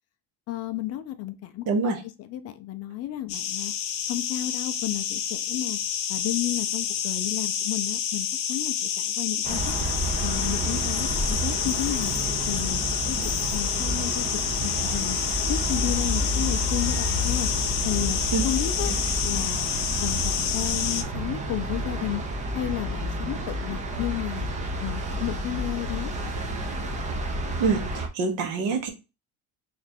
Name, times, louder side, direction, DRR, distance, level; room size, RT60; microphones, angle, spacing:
voice 1, 0.5-1.9 2.3-3.7 4.1-5.8 6.1-9.8 10.2-12.1 12.5-13.2 13.5-15.2 15.5-17.5 17.8-18.9 19.2-19.7 20.0-22.2 22.5-24.5 24.8-26.1, left 14 dB, 45° left, 0.4 m, -32 dB
voice 2, 1.7-2.0 18.3-18.4 27.6-28.9, right 5 dB, 55° right, 1.0 m, -25 dB
sound 1, 3.3-21.0, left 9 dB, 75° left, 0.7 m, -29 dB
sound 2, 9.4-28.1, right 1 dB, 20° right, 0.6 m, -30 dB
3.0 x 2.5 x 4.2 m
cardioid pair, 150°, 37 cm